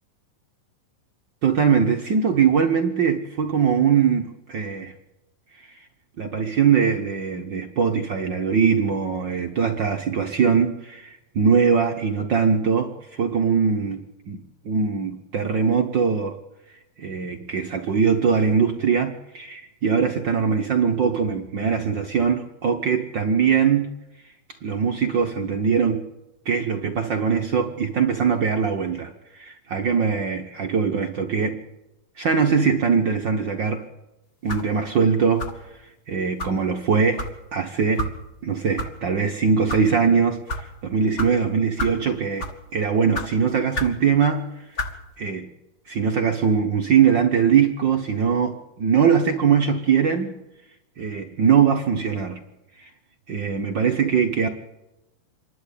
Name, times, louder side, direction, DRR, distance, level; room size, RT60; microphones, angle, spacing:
voice 1, 1.4-4.9 5.6-5.7 6.2-16.4 17.0-23.9 24.6-26.1 26.4-31.6 32.2-33.8 34.4-35.5 36.1-37.3 37.5-38.1 38.4-44.5 45.2-45.5 45.9-50.4 51.0-52.4 52.8-52.9 53.3-54.5, right 6 dB, 85° right, 4 dB, 1.0 m, -21 dB
sound 1, 34.5-34.7 35.4-35.7 36.4-36.6 37.2-37.3 38.0-38.1 38.8-38.9 39.5-39.8 40.5-40.6 41.2-41.3 41.8-42.0 42.4-42.6 43.1-43.3 43.7-44.0 44.7-44.9, left 1 dB, 25° left, 1.7 m, -29 dB
27.0 x 11.5 x 8.4 m, 0.94 s
omnidirectional pair, 3.8 m